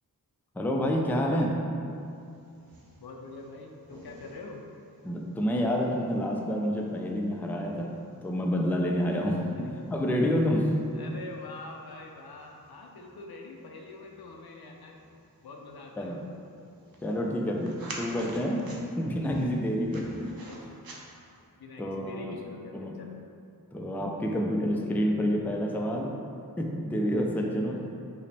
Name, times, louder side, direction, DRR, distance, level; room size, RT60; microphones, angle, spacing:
voice 1, 0.6-1.8 5.0-10.7 16.0-16.3 17.0-18.7 19.0-20.3 21.8-22.3 22.7-22.9 23.7-26.1 26.6-27.9, equal, 5° left, 0 dB, 0.3 m, -28 dB
sound 1, 2.0-21.5, right 2 dB, 70° right, 0.6 m, -50 dB
voice 2, 3.0-4.6 9.5-9.7 10.9-15.0 15.4-16.2 20.4-20.8 21.6-23.2 27.8-27.9, left 2 dB, 85° left, 1 dB, 0.5 m, -45 dB
4.9 x 2.1 x 3.3 m, 2.5 s
wide cardioid pair, 55°, 37 cm